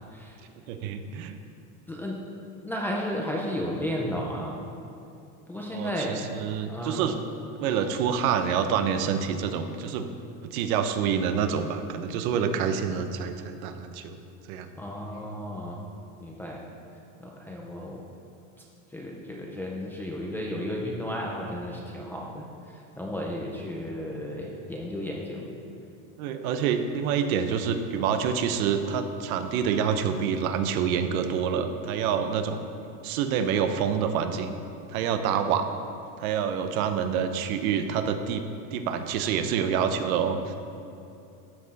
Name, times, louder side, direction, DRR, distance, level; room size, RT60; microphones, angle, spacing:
voice 1, 0.7-1.4 5.7-7.1 7.6-10.1 10.4-14.2 14.5-14.7 26.2-32.6 33.0-34.5 34.9-35.7 36.2-38.4 38.7-40.6, right 7 dB, 80° right, 8 dB, 1.0 m, -27 dB
voice 2, 2.6-4.7 5.5-6.3 6.7-7.2 14.8-15.8 16.2-16.6 17.2-18.0 18.9-22.4 23.0-25.5, equal, 5° left, -3 dB, 0.3 m, -33 dB
13.0 x 8.5 x 4.1 m, 2.7 s
cardioid pair, 170°, 41 cm